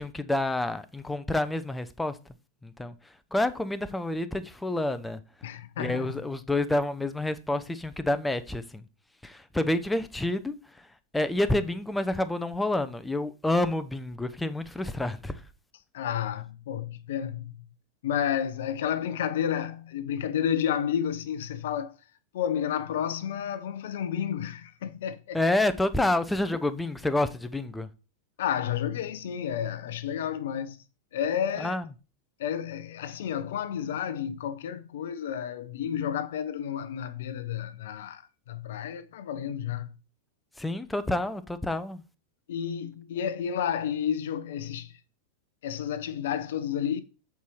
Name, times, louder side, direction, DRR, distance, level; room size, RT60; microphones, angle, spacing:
voice 1, 0.0-2.2 2.6-2.9 3.3-5.2 5.8-8.8 9.2-10.5 11.1-15.4 25.3-27.9 31.6-31.8 40.6-42.0, left 1 dB, 5° left, 0.6 m, -28 dB
voice 2, 5.4-6.2 15.9-17.6 18.0-21.9 22.3-25.4 28.4-30.8 31.1-31.8 32.4-39.9 42.5-44.9 45.6-47.0, left 9 dB, 55° left, 0.6 m, -31 dB
6.8 x 4.5 x 4.6 m
figure-of-eight pair, 90°, 0 cm